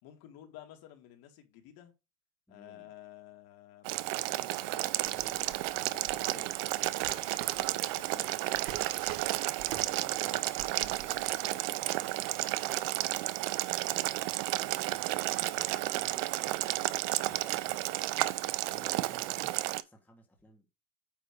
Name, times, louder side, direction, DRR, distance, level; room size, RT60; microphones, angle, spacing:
voice 1, 0.0-1.9 2.5-5.5 5.9-8.8 9.8-11.5, left 12 dB, 50° left, 2.1 m, -54 dB
voice 2, 2.5-2.9 5.1-5.9 8.0-8.4 9.6-12.8 13.7-14.2 14.6-15.3 15.6-18.1 18.7-20.6, left 1 dB, 5° left, 1.5 m, -57 dB
Boiling, 3.8-19.8, right 18 dB, 45° right, 0.5 m, -32 dB
Drawer open or close, 5.0-10.2 10.5-11.3, right 12 dB, 90° right, 1.6 m, -45 dB
9.1 x 3.1 x 6.5 m
cardioid pair, 160°, 47 cm